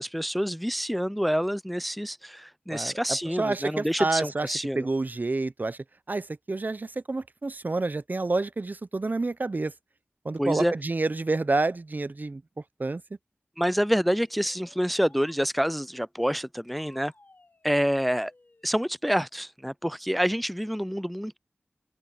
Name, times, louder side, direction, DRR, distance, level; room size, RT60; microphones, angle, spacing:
voice 1, 0.0-4.9 10.4-10.7 13.6-17.1 17.6-18.3 18.6-21.4, equal, ahead, 0.4 m, -27 dB
voice 2, 3.4-5.8 6.1-9.7 10.2-12.4 12.8-13.0, right 3 dB, 45° right, 0.6 m, -28 dB
sound 1, 13.6-15.4 16.8-18.8, left 2 dB, 45° left, 3.7 m, -58 dB
open air
wide cardioid pair, 50°, 4 cm